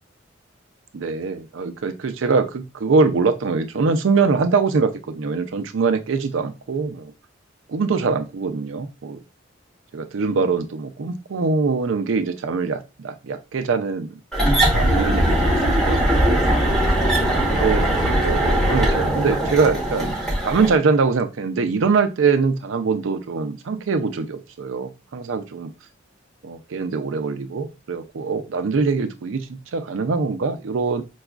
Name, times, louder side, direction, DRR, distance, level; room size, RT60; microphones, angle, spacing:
voice 1, 0.9-7.1 7.7-9.2 9.9-14.2 14.5-16.5 17.5-17.9 18.1-20.1 20.4-25.7 26.4-31.0, right 4 dB, 85° right, 9 dB, 0.5 m, -23 dB
sound 1, 14.3-20.8, right 1 dB, ahead, 1.0 m, -20 dB
4.8 x 2.3 x 2.3 m, 0.28 s
head